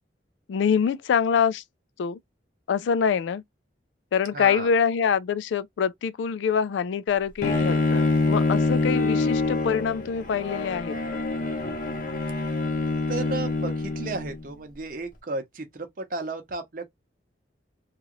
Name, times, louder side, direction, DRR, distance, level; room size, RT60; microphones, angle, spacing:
voice 1, 0.5-1.6 2.0-2.2 2.7-3.4 4.1-11.2, left 7 dB, 80° left, 0.3 m, -25 dB
voice 2, 4.3-4.7 13.1-16.9, right 3 dB, 50° right, 0.8 m, -33 dB
Bowed string instrument, 7.4-14.5, left 3 dB, 50° left, 0.7 m, -25 dB
3.0 x 2.4 x 2.9 m
head